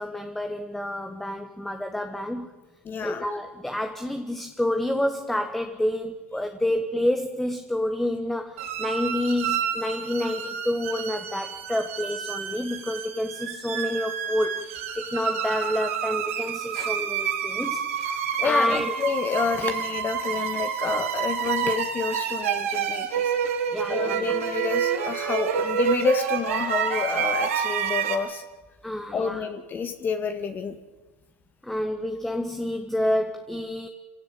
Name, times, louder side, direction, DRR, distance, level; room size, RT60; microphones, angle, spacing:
voice 1, 0.0-2.5 3.0-18.9 23.7-24.3 28.8-29.4 31.6-33.9, left 1 dB, 5° left, 6 dB, 1.5 m, -28 dB
voice 2, 2.9-3.2 16.8-16.9 18.4-23.3 23.9-28.4 29.1-30.8, left 5 dB, 25° left, 8 dB, 1.8 m, -29 dB
sound 1, 8.6-28.1, right 8 dB, 75° right, 4.0 m, -28 dB
26.0 x 16.5 x 9.0 m, 1.2 s
hypercardioid pair, 110°, 7 cm